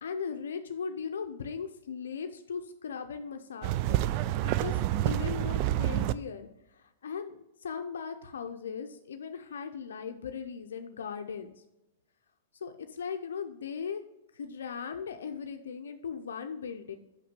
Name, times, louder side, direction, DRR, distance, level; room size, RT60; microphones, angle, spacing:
voice 1, 0.0-4.1 4.4-6.5 6.8-11.5 12.6-14.0 14.3-17.0, left 6 dB, 80° left, 6 dB, 0.5 m, -38 dB
sound 1, 3.6-6.1, right 14 dB, 45° right, 0.3 m, -28 dB
5.9 x 5.8 x 5.1 m, 0.94 s
hypercardioid pair, 125°, 0 cm